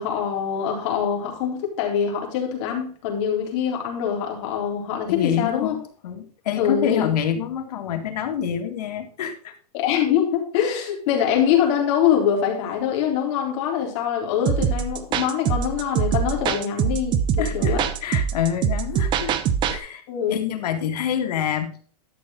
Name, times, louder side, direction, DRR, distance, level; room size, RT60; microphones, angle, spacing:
voice 1, 0.0-5.8 6.6-7.1 9.7-17.9 20.1-20.4, left 8 dB, 45° left, 0 dB, 3.8 m, -24 dB
voice 2, 5.1-9.5 17.4-19.3 19.7-20.0 20.3-21.8, left 9 dB, 75° left, 5 dB, 2.2 m, -27 dB
sound 1, 14.5-19.8, right 8 dB, 20° right, 0.7 m, -23 dB
12.5 x 6.8 x 3.8 m, 0.44 s
supercardioid pair, 160°, 21 cm